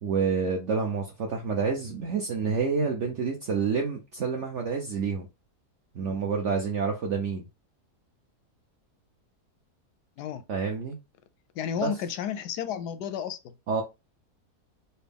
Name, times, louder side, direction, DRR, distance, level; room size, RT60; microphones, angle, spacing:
voice 1, 0.0-5.3 5.9-7.5 10.5-11.0 11.8-11.9 13.7-13.8, right 5 dB, 60° right, 0.8 m, -28 dB
voice 2, 11.5-13.4, left 9 dB, 85° left, 1.1 m, -32 dB
4.2 x 2.2 x 3.4 m
omnidirectional pair, 1.7 m